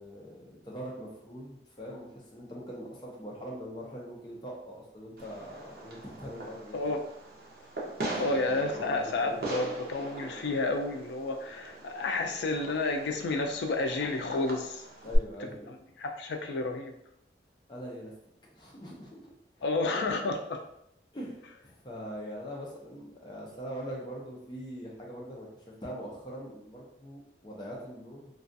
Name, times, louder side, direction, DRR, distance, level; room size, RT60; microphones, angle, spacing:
voice 1, 0.0-7.0 8.0-9.5 15.0-15.7 17.7-18.1 18.5-19.3 19.6-19.7 21.1-28.3, equal, 25° left, -3 dB, 0.5 m, -42 dB
Fireworks, 5.2-15.2, right 1 dB, 55° right, 0.6 m, -40 dB
voice 2, 6.7-7.0 8.2-14.8 15.4-16.9 19.6-20.6 21.4-21.6, left 3 dB, 80° left, 4 dB, 0.4 m, -31 dB
2.3 x 2.3 x 2.6 m, 0.75 s
head